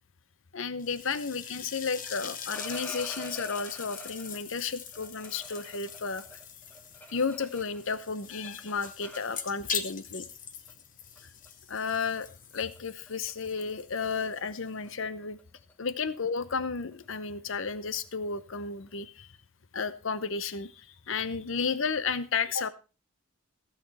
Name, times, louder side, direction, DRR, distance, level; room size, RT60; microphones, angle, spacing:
voice 1, 0.5-6.2 7.1-10.3 11.7-12.3 12.5-15.4 15.8-19.3 19.7-22.7, left 5 dB, 60° left, 15 dB, 0.8 m, -33 dB
sound 1, 0.8-15.0, left 7 dB, 40° left, 1.0 m, -42 dB
sound 2, 2.5-4.4 4.9-8.0 8.2-9.8 10.7-10.8 11.2-11.5 11.9-12.2 12.5-12.8 13.1-13.3 13.6-19.0, equal, 10° left, 1.0 m, -48 dB
15.5 x 8.5 x 4.1 m, 0.33 s
head